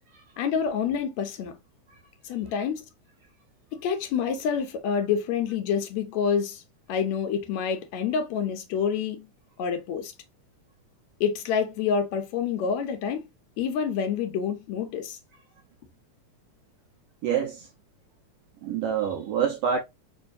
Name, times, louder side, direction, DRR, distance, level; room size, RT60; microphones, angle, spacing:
voice 1, 0.4-1.6 2.2-2.8 3.7-6.6 6.9-9.3 9.6-10.1 11.2-13.3 13.6-15.2, left 7 dB, 80° left, 1.8 m, -27 dB
voice 2, 17.2-17.7 18.6-19.8, right 7 dB, 80° right, 1.4 m, -26 dB
4.5 x 2.6 x 2.6 m
omnidirectional pair, 3.3 m